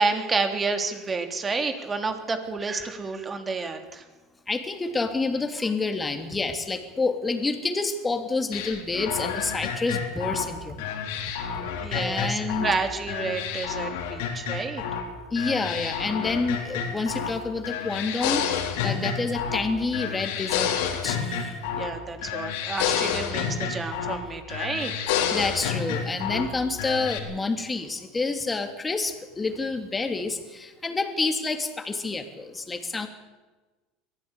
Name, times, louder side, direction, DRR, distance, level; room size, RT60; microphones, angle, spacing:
voice 1, 0.0-4.0 11.8-14.8 21.8-24.9, right 4 dB, 25° right, 6 dB, 3.3 m, -29 dB
voice 2, 4.5-10.9 11.9-12.7 15.3-18.4 18.8-20.7 21.0-21.6 25.3-33.1, left 3 dB, 20° left, 5 dB, 3.1 m, -28 dB
sound 1, 8.5-12.8 13.1-15.1 15.4-17.4 17.6-19.7 19.9-22.0 22.2-24.2 24.5-26.5 26.8-27.2, left 7 dB, 75° left, 3.9 m, -29 dB
23.0 x 15.0 x 8.5 m, 1.2 s
supercardioid pair, 95°, 0 cm